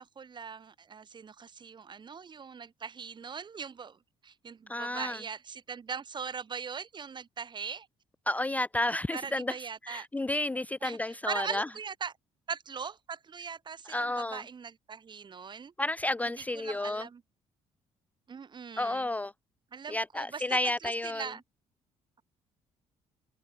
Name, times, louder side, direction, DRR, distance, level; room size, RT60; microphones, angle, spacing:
voice 1, 0.0-7.9 9.1-10.1 10.8-12.1 12.5-15.7 16.2-17.2 18.3-19.1 19.7-21.4, right 6 dB, 40° right, 2.7 m, -40 dB
voice 2, 4.7-5.2 8.3-9.6 9.8-11.6 13.9-14.4 15.8-17.1 18.8-19.3 19.9-21.2, left 1 dB, 10° left, 0.5 m, -31 dB
cardioid pair, 90°, 12 cm